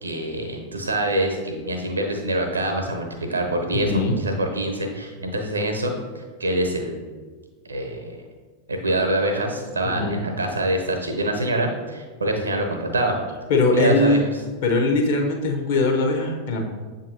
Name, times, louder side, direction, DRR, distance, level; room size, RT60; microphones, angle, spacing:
voice 1, 0.0-7.0 7.7-8.2 8.7-13.2 13.7-14.2, right 1 dB, 75° right, 3 dB, 0.7 m, -25 dB
voice 2, 3.8-4.2 9.9-10.2 13.5-14.2 14.6-16.7, left 2 dB, 55° left, 2 dB, 0.7 m, -21 dB
7.1 x 2.6 x 2.7 m, 1.4 s
figure-of-eight pair, 90°, 0 cm